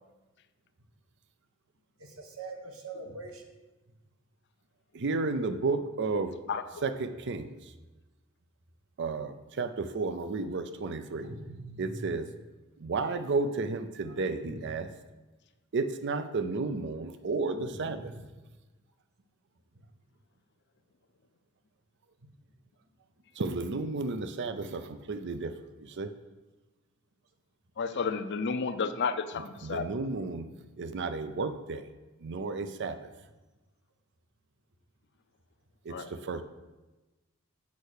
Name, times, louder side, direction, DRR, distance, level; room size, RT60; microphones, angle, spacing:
voice 1, 2.0-3.4 11.2-12.1 14.4-14.6 17.5-18.2 19.7-19.8, right 2 dB, 90° right, 3 dB, 1.4 m, -43 dB
voice 2, 4.9-6.3 6.8-7.7 9.0-11.2 11.8-12.3 12.8-14.9 15.7-18.1 23.4-25.5 25.8-26.1 29.6-30.5 30.8-31.9 32.2-33.1 35.8-36.4, right 3 dB, 55° right, 10 dB, 0.5 m, -32 dB
voice 3, 6.5-6.8 27.8-29.9 35.9-36.2, left 5 dB, 55° left, 11 dB, 0.5 m, -32 dB
8.4 x 5.4 x 6.4 m, 1.1 s
head